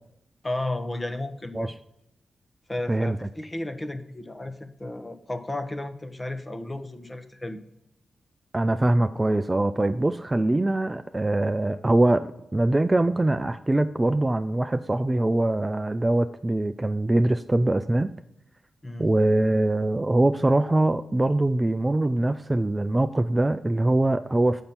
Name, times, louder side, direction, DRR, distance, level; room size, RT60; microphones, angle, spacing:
voice 1, 0.4-1.7 2.7-7.6 18.8-19.1, left 1 dB, 20° left, 9 dB, 0.9 m, -33 dB
voice 2, 8.5-18.1 19.0-24.6, right 2 dB, 20° right, 10 dB, 0.4 m, -23 dB
7.0 x 5.4 x 5.8 m, 0.80 s
cardioid pair, 85°, 0 cm